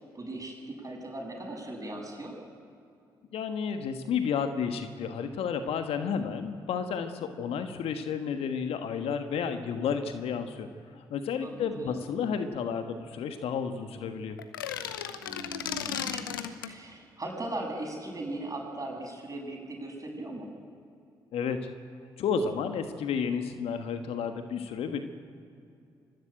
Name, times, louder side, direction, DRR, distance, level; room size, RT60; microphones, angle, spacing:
voice 1, 0.1-2.3 11.4-12.1 15.3-16.2 16.6-20.5, right 2 dB, 30° right, 1 dB, 7.5 m, -38 dB
voice 2, 3.3-10.7 10.9-14.4 21.3-21.7 22.2-25.0, left 6 dB, 60° left, 7 dB, 1.4 m, -31 dB
sound 1, 14.4-16.7, left 9 dB, 85° left, 0.8 m, -35 dB
24.5 x 14.5 x 9.1 m, 2.5 s
figure-of-eight pair, 40°, 11 cm